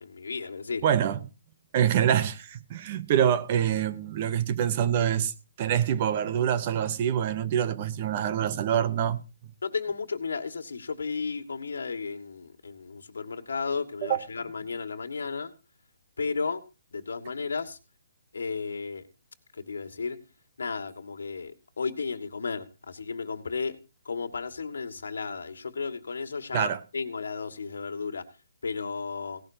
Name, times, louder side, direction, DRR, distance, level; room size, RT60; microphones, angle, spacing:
voice 1, 0.0-0.8 9.6-15.5 16.2-16.6 16.9-17.8 18.3-19.0 19.6-20.2 20.6-23.8 24.0-28.2 28.6-29.4, left 5 dB, 85° left, 1.7 m, -33 dB
voice 2, 0.8-1.2 1.7-5.3 5.6-9.2 14.0-14.2 26.5-26.8, right 9 dB, 30° right, 0.8 m, -25 dB
17.5 x 12.0 x 2.8 m
hypercardioid pair, 170°, 0 cm